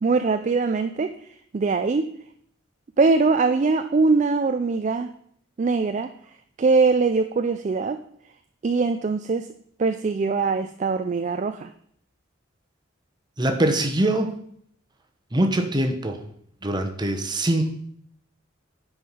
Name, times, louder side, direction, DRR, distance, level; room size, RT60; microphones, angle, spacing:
voice 1, 0.0-2.1 3.0-5.1 5.6-6.1 6.6-8.0 8.6-9.5 9.8-11.7, right 4 dB, 40° right, 9 dB, 0.3 m, -22 dB
voice 2, 13.4-14.3 15.3-16.2 16.6-17.7, right 1 dB, 20° right, 4 dB, 1.0 m, -23 dB
9.7 x 4.7 x 5.5 m, 0.66 s
head